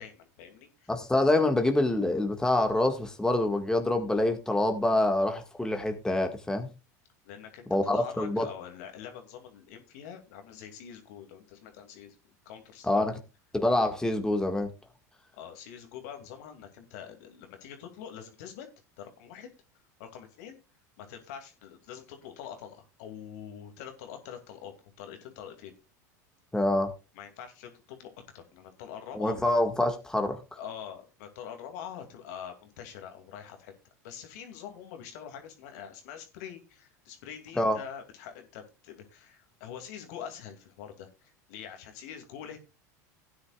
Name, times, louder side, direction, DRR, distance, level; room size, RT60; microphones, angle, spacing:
voice 1, 0.0-0.9 7.2-7.7 7.9-12.2 12.5-13.0 15.3-18.7 19.0-19.5 20.0-20.6 21.0-25.7 27.1-29.4 30.6-33.7 34.0-42.6, left 8 dB, 70° left, 2.5 m, -45 dB
voice 2, 0.9-6.7 7.7-8.5 12.8-13.1 13.5-14.7 26.5-26.9 29.1-30.4 37.6-37.8, left 1 dB, 5° left, 1.8 m, -26 dB
16.5 x 9.6 x 2.4 m
hypercardioid pair, 90°, 9 cm